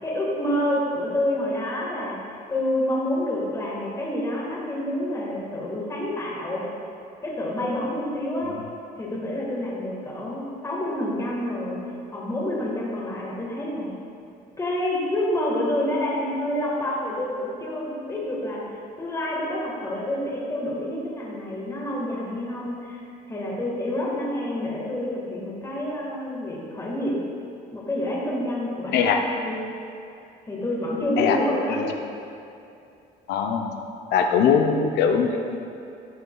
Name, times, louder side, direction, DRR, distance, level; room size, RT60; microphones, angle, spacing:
voice 1, 0.0-2.2 2.5-6.6 7.2-8.6 9.0-11.8 12.1-13.9 14.6-18.6 19.0-23.0 23.3-27.1 27.7-29.6 30.5-31.8, left 1 dB, 20° left, -5 dB, 1.7 m, -28 dB
voice 2, 28.9-29.2 31.2-31.4 31.7-31.9 33.3-35.6, left 6 dB, 80° left, 4 dB, 0.6 m, -22 dB
12.5 x 6.7 x 2.4 m, 2.6 s
cardioid pair, 110°, 17 cm